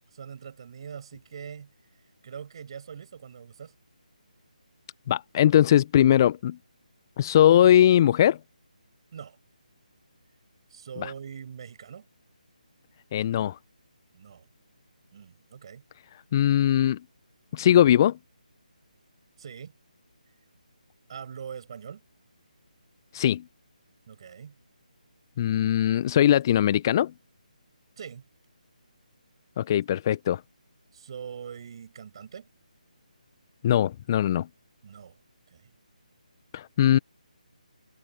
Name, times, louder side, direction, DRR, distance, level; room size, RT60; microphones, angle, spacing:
voice 1, 0.1-1.7 2.2-3.7 9.1-9.4 10.7-12.1 14.1-14.5 15.1-15.8 19.4-19.7 21.1-22.0 24.1-24.6 28.0-28.3 30.9-32.5 34.8-35.2 35.5-35.7, right 7 dB, 40° right, 6.5 m, -42 dB
voice 2, 5.1-6.6 7.2-8.4 11.0-11.1 13.1-13.6 16.3-17.0 17.5-18.2 23.1-23.4 25.4-27.1 29.6-30.4 33.6-34.5 36.5-37.0, left 11 dB, 30° left, 0.9 m, -20 dB
figure-of-eight pair, 150°, 4 cm